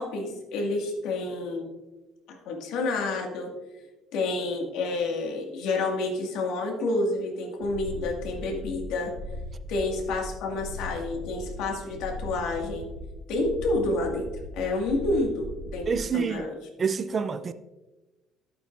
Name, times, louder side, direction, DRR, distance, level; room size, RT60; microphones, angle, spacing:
voice 1, 0.0-1.6 2.3-3.5 4.1-9.1 9.7-12.9 13.3-14.3 14.5-16.5, left 2 dB, 75° left, 1.9 m, -29 dB
sound 1, 7.6-16.1, left 1 dB, 85° right, 2.5 m, -39 dB
voice 2, 15.9-16.5 16.8-17.5, right 6 dB, 30° right, 0.5 m, -27 dB
11.5 x 8.6 x 2.6 m
cardioid pair, 130°, 0 cm